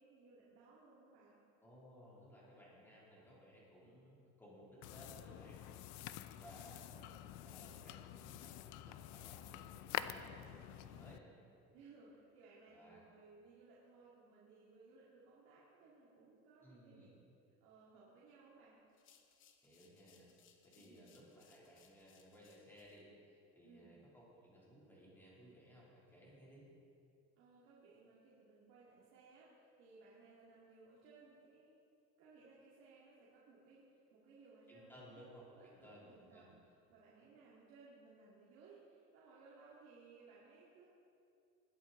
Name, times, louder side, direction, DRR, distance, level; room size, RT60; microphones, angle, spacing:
voice 1, 0.0-1.3 6.2-7.2 10.9-17.1 17.6-18.8 20.7-21.1 23.6-23.9 27.4-31.7 32.2-35.2 35.5-36.5 36.9-40.9, right 4 dB, 70° right, -8 dB, 2.5 m, -62 dB
voice 2, 1.6-5.6 6.3-6.8 7.4-11.2 12.7-13.0 16.6-17.1 19.6-20.3 20.6-26.7 34.7-36.5, equal, 5° left, -7 dB, 2.9 m, -60 dB
sound 1, 4.8-11.2, left 12 dB, 90° left, 0.6 m, -48 dB
sound 2, 18.9-23.0, left 8 dB, 40° left, 1.0 m, -70 dB
20.0 x 8.2 x 3.9 m, 2.6 s
cardioid pair, 175°, 29 cm